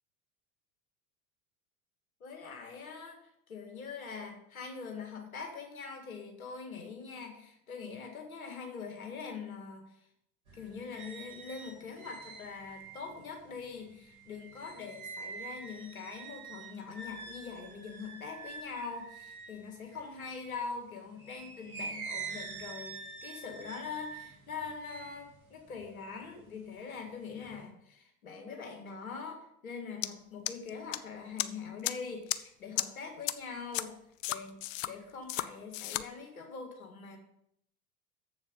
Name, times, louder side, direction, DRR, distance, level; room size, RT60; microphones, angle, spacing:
voice 1, 2.2-9.9 10.5-34.0 34.3-34.6 34.8-37.2, left 5 dB, 80° left, 3 dB, 2.0 m, -43 dB
sound 1, 10.5-20.6 21.1-26.7 27.0-27.6, right 4 dB, 80° right, 2.1 m, -46 dB
sound 2, 30.0-30.1 30.5-31.0 31.4-31.5 31.8-31.9 32.3-32.4 32.8-32.9 33.3-33.4 33.7-33.8 34.2-34.9 35.3-35.4 35.7-36.0, left 15 dB, 65° left, 0.6 m, -32 dB
7.5 x 7.2 x 5.4 m, 0.75 s
figure-of-eight pair, 70°, 42 cm